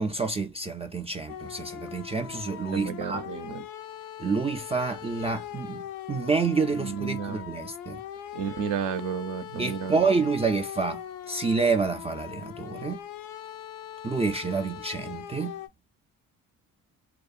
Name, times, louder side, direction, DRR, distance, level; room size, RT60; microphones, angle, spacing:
voice 1, 0.0-3.2 4.2-8.0 9.6-11.0 11.3-13.0 14.0-15.6, right 4 dB, 20° right, 0.3 m, -28 dB
sound 1, 1.3-15.7, left 10 dB, 75° left, 0.5 m, -41 dB
voice 2, 2.7-3.6 6.7-7.5 8.3-10.0, right 7 dB, 60° right, 0.6 m, -32 dB
2.7 x 2.2 x 2.3 m
supercardioid pair, 65°, 35 cm